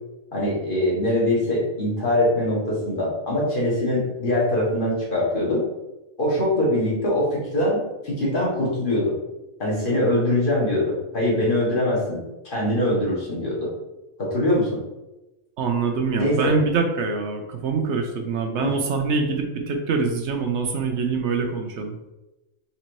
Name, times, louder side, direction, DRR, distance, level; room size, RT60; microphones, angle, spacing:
voice 1, 0.3-5.7 6.2-9.2 9.6-13.7 14.2-14.8 16.2-16.6 18.6-18.7, left 1 dB, 45° left, -4 dB, 1.5 m, -23 dB
voice 2, 15.6-22.0, right 4 dB, 70° right, 4 dB, 0.8 m, -24 dB
4.3 x 3.9 x 3.1 m, 1.0 s
omnidirectional pair, 1.3 m